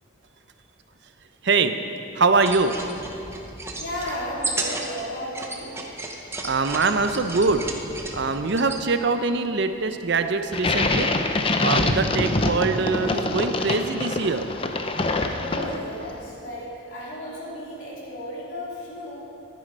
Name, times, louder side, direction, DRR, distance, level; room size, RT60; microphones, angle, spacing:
voice 1, 1.4-1.8 2.2-2.7 6.4-7.6 8.1-11.1 11.6-14.4, right 4 dB, 55° right, 8 dB, 0.6 m, -23 dB
sound 1, 2.3-8.8, right 2 dB, 15° right, 0.9 m, -34 dB
voice 2, 3.8-5.8 15.4-19.2, equal, 65° left, -7 dB, 3.0 m, -34 dB
sound 2, 10.5-16.0, left 2 dB, 25° left, 0.6 m, -24 dB
14.0 x 9.4 x 5.3 m, 2.9 s
head